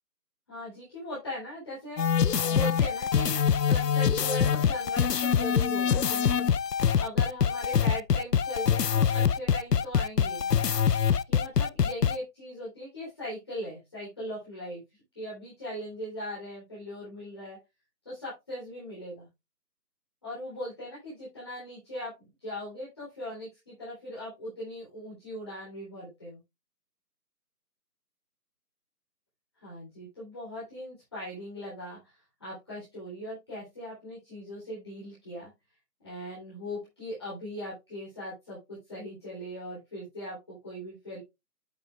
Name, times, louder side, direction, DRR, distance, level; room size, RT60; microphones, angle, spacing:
voice 1, 0.5-6.5 7.0-10.5 11.3-14.8 15.2-17.6 18.1-19.3 20.2-22.1 22.4-26.4 29.6-32.1 32.4-35.5 36.0-41.2, left 1 dB, 15° left, -9 dB, 3.6 m, -39 dB
sound 1, 2.0-12.2, left 7 dB, 80° left, 0.7 m, -24 dB
9.4 x 8.6 x 2.4 m, 0.23 s
figure-of-eight pair, 175°, 48 cm